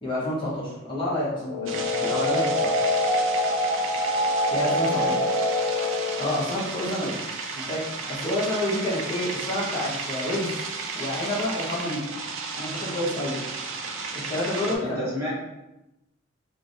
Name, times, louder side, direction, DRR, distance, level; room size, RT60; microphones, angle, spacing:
voice 1, 0.0-2.8 4.5-5.2 6.2-7.2 7.5-10.6 10.9-12.0 12.5-13.4 14.1-15.1, left 1 dB, 25° left, -7 dB, 0.9 m, -29 dB
sound 1, 1.4-6.4, left 1 dB, 75° left, 0.4 m, -25 dB
sound 2, 1.7-14.8, right 4 dB, 75° right, 0.5 m, -34 dB
voice 2, 4.6-5.3 6.8-7.1 14.7-15.3, equal, 10° right, -8 dB, 0.9 m, -34 dB
3.3 x 2.1 x 3.9 m, 0.93 s
head